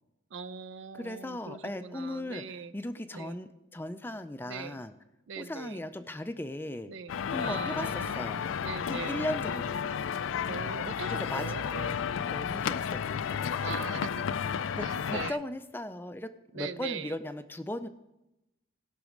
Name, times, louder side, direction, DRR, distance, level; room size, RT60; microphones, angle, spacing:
voice 1, 0.3-2.7 3.1-3.4 4.5-4.8 5.3-5.8 6.9-8.3 8.6-10.1 10.5-12.0 12.4-12.8 13.6-15.4 16.5-17.2, right 6 dB, 75° right, 14 dB, 0.5 m, -41 dB
voice 2, 0.9-2.4 2.7-4.9 5.4-6.9 7.3-8.4 8.9-9.8 11.1-11.5 12.3-13.5 14.8-17.9, left 1 dB, 10° left, 11 dB, 0.4 m, -37 dB
sound 1, 7.1-15.3, left 7 dB, 80° left, 0.4 m, -32 dB
17.0 x 6.1 x 5.1 m, 0.95 s
head